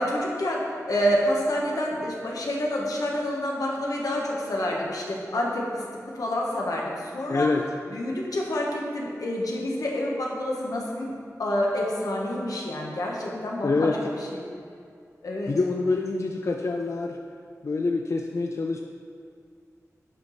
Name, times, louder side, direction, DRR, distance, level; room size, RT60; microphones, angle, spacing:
voice 1, 0.0-7.5 7.9-11.1 11.4-14.4 15.2-15.5, left 1 dB, 90° left, -2 dB, 1.1 m, -28 dB
voice 2, 7.3-7.6 13.3-14.0 15.5-17.2 17.6-18.8, left 3 dB, 55° left, 2 dB, 0.4 m, -26 dB
8.2 x 4.9 x 4.1 m, 2.3 s
wide cardioid pair, 90°, 6 cm